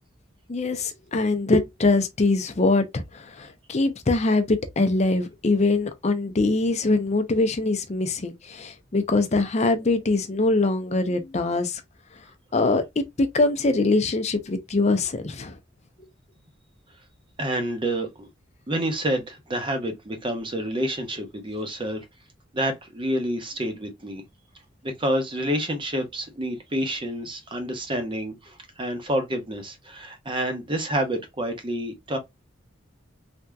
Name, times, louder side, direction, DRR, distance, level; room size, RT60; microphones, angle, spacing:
voice 1, 0.5-11.8 12.5-12.8 13.2-15.6, left 2 dB, 35° left, 0.5 m, -23 dB
voice 2, 17.4-18.3 18.7-22.0 22.5-24.2 24.8-32.2, right 1 dB, 25° right, 0.7 m, -28 dB
3.4 x 2.7 x 2.2 m
head